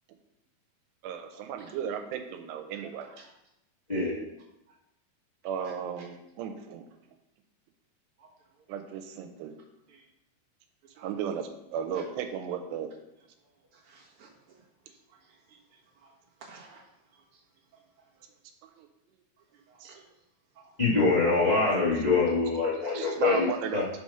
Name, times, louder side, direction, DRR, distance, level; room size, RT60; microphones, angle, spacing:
voice 1, 1.0-3.1 5.4-6.9 8.7-9.6 11.0-12.9 18.6-18.9 19.8-20.0 22.6-22.7 22.9-23.9, right 8 dB, 90° right, 6 dB, 2.8 m, -35 dB
voice 2, 3.9-4.2 20.8-23.9, left 3 dB, 25° left, -8 dB, 0.9 m, -25 dB
voice 3, 13.7-14.3 14.9-16.1 16.4-16.8 19.7-20.1 20.5-20.7 23.0-23.1, right 4 dB, 60° right, -4 dB, 1.4 m, -55 dB
5.9 x 4.8 x 5.6 m, 0.85 s
omnidirectional pair, 4.7 m